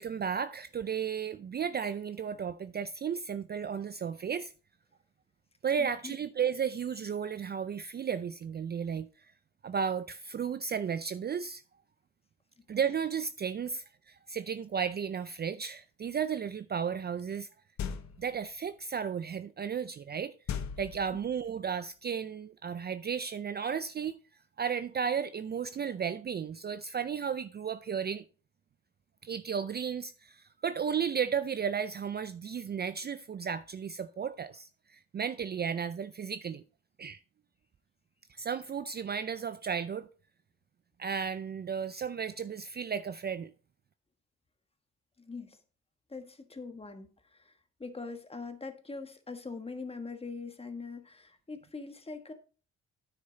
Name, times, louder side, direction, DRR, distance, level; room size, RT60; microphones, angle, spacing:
voice 1, 0.0-4.5 5.6-9.1 9.6-11.6 12.7-13.8 14.3-17.5 18.2-20.3 20.8-24.1 24.6-28.2 29.2-34.7 35.1-36.6 37.0-37.2 38.4-40.1 41.0-43.5, right 7 dB, 35° right, 0.5 m, -34 dB
voice 2, 5.8-6.1 12.6-12.7 21.1-21.2 45.2-45.6 46.1-52.3, left 4 dB, 20° left, 1.4 m, -43 dB
sound 1, 17.8-18.4 20.5-21.5, left 7 dB, 65° left, 0.9 m, -38 dB
9.3 x 6.6 x 4.0 m
cardioid pair, 90°, 30 cm